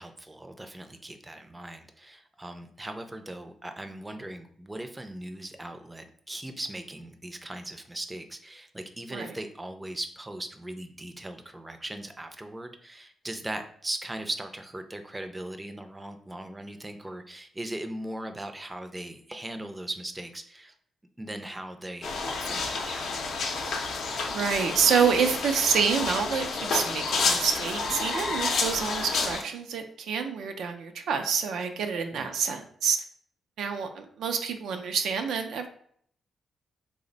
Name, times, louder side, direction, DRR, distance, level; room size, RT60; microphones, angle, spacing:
voice 1, 0.0-20.7 21.2-23.2 32.1-32.3, right 1 dB, 15° right, 6 dB, 0.4 m, -39 dB
sound 1, 22.0-29.4, left 4 dB, 75° left, 0.5 m, -30 dB
voice 2, 24.3-33.0 33.6-35.7, right 6 dB, 85° right, 6 dB, 0.4 m, -27 dB
3.2 x 2.1 x 3.8 m, 0.62 s
cardioid pair, 85°, 0 cm